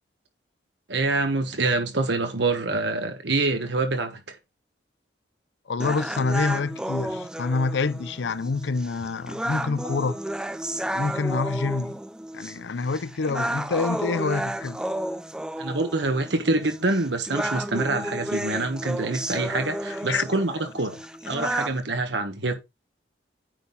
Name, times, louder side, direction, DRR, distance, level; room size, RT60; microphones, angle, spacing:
voice 1, 0.9-4.4 15.6-22.6, right 2 dB, 75° right, 1.2 m, -26 dB
voice 2, 5.7-10.2 10.8-12.0 12.3-14.8 20.1-20.2 21.4-21.5, left 4 dB, 80° left, 0.5 m, -27 dB
sound 1, 5.8-21.8, right 1 dB, 5° right, 0.3 m, -32 dB
9.2 x 4.1 x 4.0 m
head